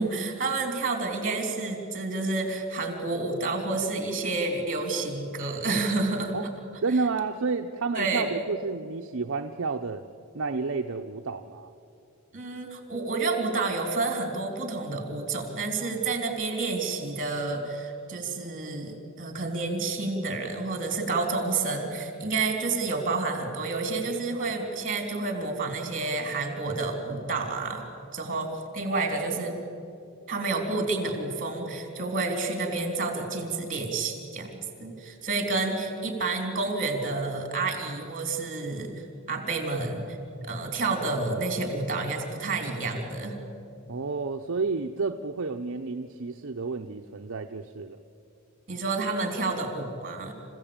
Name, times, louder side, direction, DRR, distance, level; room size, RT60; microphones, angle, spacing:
voice 1, 0.0-6.4 7.9-8.4 12.3-27.8 28.1-29.6 30.3-40.1 40.4-43.4 48.7-50.3, right 3 dB, 35° right, 4 dB, 3.7 m, -29 dB
voice 2, 6.8-10.0 10.3-11.7 43.9-48.0, right 4 dB, 60° right, 4 dB, 0.7 m, -30 dB
28.0 x 16.0 x 8.9 m, 2.7 s
head